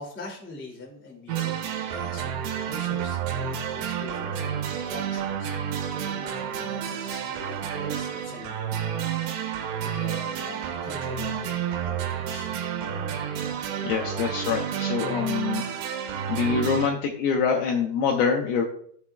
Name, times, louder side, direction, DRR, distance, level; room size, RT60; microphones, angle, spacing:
voice 1, 0.0-1.5 1.9-2.3 2.6-9.4 9.8-11.5 11.8-12.5, left 2 dB, 10° left, -3 dB, 0.5 m, -43 dB
sound 1, 1.3-16.9, right 8 dB, 80° right, 3.0 m, -30 dB
voice 2, 13.8-15.7 16.3-18.7, left 6 dB, 80° left, 2 dB, 2.3 m, -25 dB
15.5 x 7.1 x 2.3 m, 0.62 s
omnidirectional pair, 5.3 m